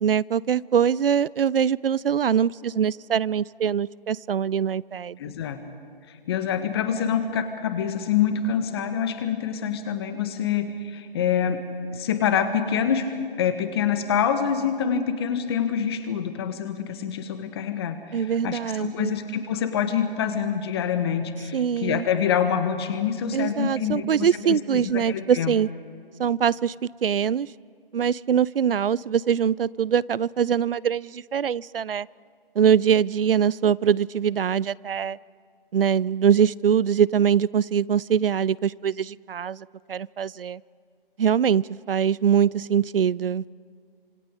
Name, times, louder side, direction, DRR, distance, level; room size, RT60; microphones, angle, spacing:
voice 1, 0.0-5.3 18.1-19.1 21.5-22.1 23.3-25.7 26.2-27.5 27.9-32.1 32.6-35.2 35.7-40.6 41.2-43.4, right 8 dB, 70° right, 23 dB, 0.5 m, -23 dB
voice 2, 5.2-5.7 6.3-11.6 11.9-13.1 13.4-25.5, left 8 dB, 25° left, 9 dB, 1.5 m, -26 dB
28.0 x 26.5 x 5.3 m, 2.1 s
figure-of-eight pair, 155°, 29 cm